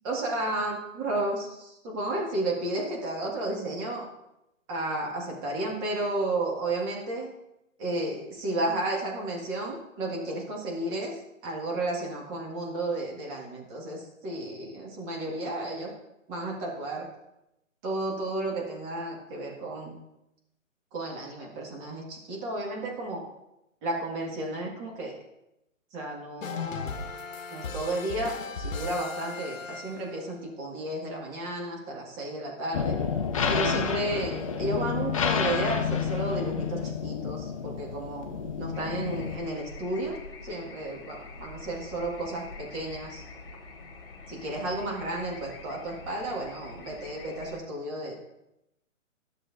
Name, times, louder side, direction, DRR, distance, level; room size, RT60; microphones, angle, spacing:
voice 1, 0.0-4.1 4.7-7.3 7.8-15.9 16.3-17.1 17.8-20.0 20.9-23.2 23.8-25.1 25.9-27.0 27.5-33.0 33.5-38.3 38.6-40.2 40.4-43.2 44.3-48.2, right 2 dB, 25° right, -2 dB, 1.9 m, -32 dB
sound 1, 26.4-30.3, left 4 dB, 75° left, 0.9 m, -37 dB
sound 2, 32.7-39.4, left 6 dB, 25° left, 0.5 m, -29 dB
sound 3, 38.7-47.6, left 3 dB, 45° left, 1.6 m, -45 dB
13.0 x 6.7 x 2.6 m, 0.88 s
hypercardioid pair, 145°, 40 cm